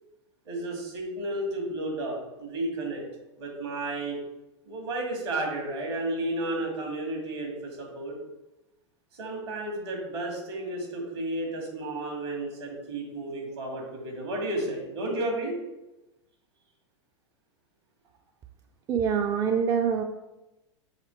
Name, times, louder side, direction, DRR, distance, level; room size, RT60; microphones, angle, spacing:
voice 1, 0.4-3.0 3.4-4.2 4.6-8.1 9.1-15.6, right 1 dB, 60° right, 0 dB, 2.3 m, -32 dB
voice 2, 18.9-20.0, right 7 dB, 20° right, 5 dB, 0.3 m, -25 dB
7.2 x 3.4 x 4.5 m, 0.98 s
figure-of-eight pair, 90°, 15 cm